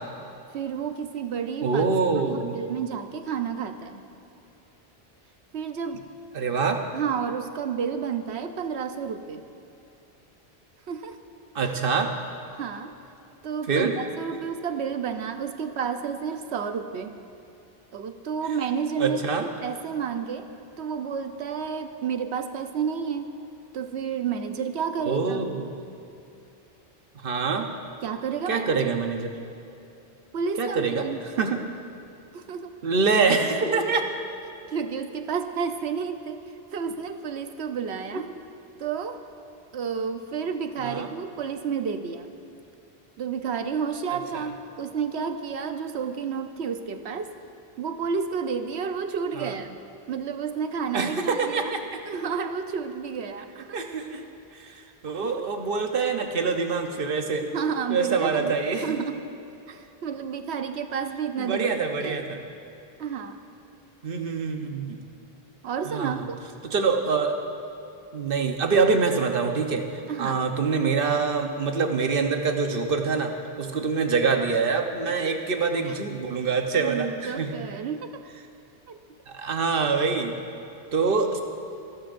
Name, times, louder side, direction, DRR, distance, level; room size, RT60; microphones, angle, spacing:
voice 1, 0.5-1.9 2.2-4.1 5.5-6.1 6.9-9.4 10.9-11.2 12.5-12.9 13.4-17.1 17.9-19.3 19.6-20.5 20.8-23.3 23.7-25.5 28.0-28.8 30.3-31.2 32.3-32.8 33.7-34.0 34.7-36.4 36.7-38.3 38.8-39.2 39.7-42.3 43.2-47.3 47.8-49.8 50.1-51.7 52.0-53.8 55.2-55.5 57.5-59.2 59.7-61.7 62.0-62.2 63.0-63.4 65.6-66.4 70.1-70.4 75.1-75.3 75.8-76.0 76.8-78.2 78.9-79.0, right 6 dB, 85° right, 7 dB, 1.0 m, -31 dB
voice 2, 1.6-2.6 6.3-6.8 11.5-12.1 13.7-13.9 19.0-19.5 25.1-25.7 27.2-27.7 28.5-29.3 30.6-31.1 31.4-31.6 32.8-34.0 38.1-38.2 40.8-41.1 44.3-44.4 49.4-49.5 50.9-52.0 53.7-54.2 54.5-57.4 57.9-59.1 61.4-62.4 64.0-65.0 65.8-66.3 66.6-67.3 68.1-69.8 70.2-77.6 79.3-80.4 80.9-81.4, right 4 dB, 60° right, 4 dB, 1.1 m, -25 dB
29.0 x 13.0 x 2.6 m, 2.8 s
omnidirectional pair, 1.1 m